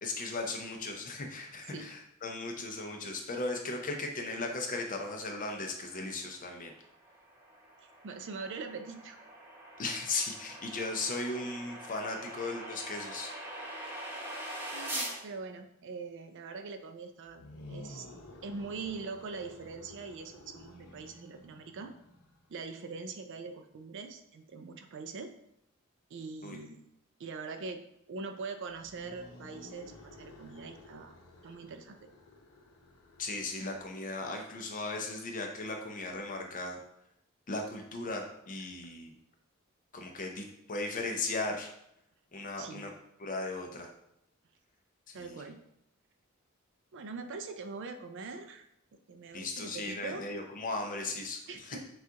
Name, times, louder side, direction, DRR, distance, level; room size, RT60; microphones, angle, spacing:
voice 1, 0.0-6.7 9.8-13.3 26.4-26.6 33.2-36.8 37.5-39.1 39.9-41.7 42.3-42.9 43.2-43.9 45.1-45.3 49.3-51.8, left 3 dB, 40° left, 3 dB, 0.6 m, -37 dB
sound 1, 6.6-15.2, right 1 dB, 10° right, 0.7 m, -43 dB
voice 2, 8.0-9.2 14.7-17.4 17.7-18.1 18.4-21.9 22.5-25.3 26.1-26.8 27.2-27.8 28.1-31.1 31.4-32.0 42.6-42.8 45.1-45.6 46.9-48.7 49.1-50.3 51.5-51.9, right 4 dB, 55° right, 7 dB, 0.4 m, -42 dB
sound 2, 17.3-22.4 28.7-34.4, left 1 dB, 85° left, 0.8 m, -52 dB
6.1 x 2.4 x 2.8 m, 0.78 s
head